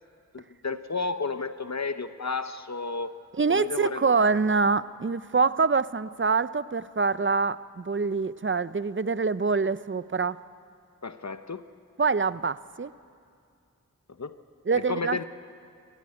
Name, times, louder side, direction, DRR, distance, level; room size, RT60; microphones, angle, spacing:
voice 1, 0.3-3.1 3.5-4.3 11.0-11.6 14.2-14.3 14.7-15.2, left 4 dB, 55° left, 11 dB, 0.8 m, -32 dB
voice 2, 3.4-10.4 12.0-12.9 14.7-15.2, right 4 dB, 35° right, 16 dB, 0.6 m, -25 dB
23.5 x 14.5 x 9.6 m, 2.3 s
wide cardioid pair, 40°, 33 cm